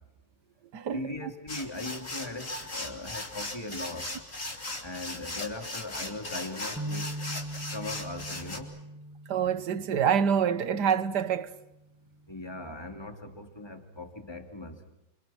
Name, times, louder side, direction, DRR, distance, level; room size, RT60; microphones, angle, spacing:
voice 1, 0.9-4.1 4.8-7.2 7.7-8.8 12.3-14.8, left 2 dB, 10° left, 2.9 m, -39 dB
sound 1, 1.5-8.6, left 2 dB, 35° left, 4.2 m, -38 dB
sound 2, 6.8-11.0 11.5-11.7 12.6-13.0, right 1 dB, 10° right, 1.2 m, -41 dB
voice 2, 9.3-11.5, right 7 dB, 55° right, 1.6 m, -26 dB
29.5 x 28.0 x 6.0 m
omnidirectional pair, 2.2 m